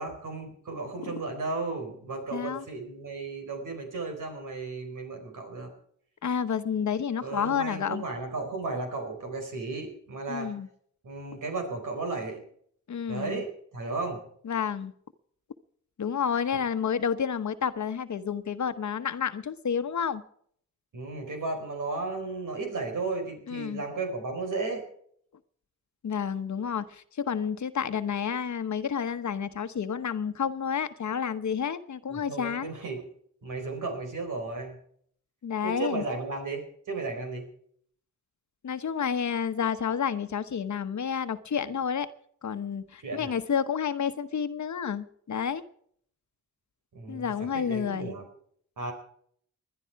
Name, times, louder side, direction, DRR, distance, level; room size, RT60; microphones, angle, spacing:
voice 1, 0.0-5.7 7.2-10.5 11.0-12.4 13.1-14.2 16.5-16.6 20.9-24.9 32.1-33.0 33.4-34.8 35.6-37.5 43.0-43.3 46.9-48.2 48.8-48.9, right 3 dB, 80° right, 4.5 m, -34 dB
voice 2, 2.3-2.6 6.2-8.0 10.3-10.7 12.9-13.4 14.4-14.9 16.0-20.2 23.5-23.8 26.0-32.7 35.4-36.0 38.6-42.1 42.4-45.6 47.1-48.1, left 7 dB, 65° left, 1.1 m, -30 dB
20.5 x 11.5 x 4.7 m
cardioid pair, 60°, 31 cm